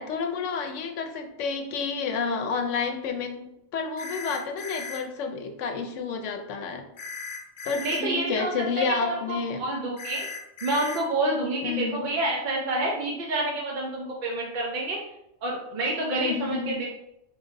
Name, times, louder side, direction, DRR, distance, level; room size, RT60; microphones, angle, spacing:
voice 1, 0.0-6.8 7.6-9.6 11.6-12.1 16.2-16.7, left 5 dB, 85° left, 5 dB, 0.9 m, -30 dB
sound 1, 4.0-5.0 7.0-8.0 10.0-11.0, left 4 dB, 55° left, 0.7 m, -37 dB
voice 2, 7.8-8.5 8.8-10.3 10.6-15.0 15.4-16.9, right 2 dB, 55° right, -2 dB, 0.5 m, -28 dB
3.1 x 2.6 x 3.9 m, 0.84 s
omnidirectional pair, 1.2 m